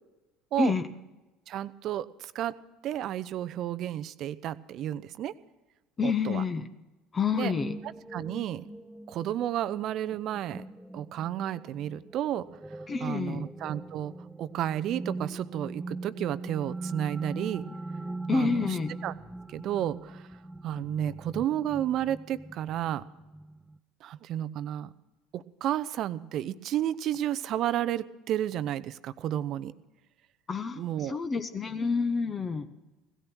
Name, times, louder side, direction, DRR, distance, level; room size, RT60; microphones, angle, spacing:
voice 1, 1.5-2.5 2.8-5.3 6.0-6.4 7.3-7.5 8.1-8.6 9.1-10.6 10.9-12.5 13.0-17.7 18.3-18.8 19.0-19.1 19.5-20.3 20.6-23.0 24.0-24.9 25.3-29.7 30.8-31.2, right 11 dB, 50° right, 16 dB, 0.6 m, -32 dB
voice 2, 6.0-6.7 7.1-7.7 12.9-13.4 18.3-18.9 30.5-32.7, left 5 dB, 30° left, 9 dB, 1.0 m, -28 dB
sound 1, 7.6-23.8, right 2 dB, 5° right, 0.5 m, -41 dB
17.0 x 13.0 x 6.2 m, 1.1 s
figure-of-eight pair, 65°, 0 cm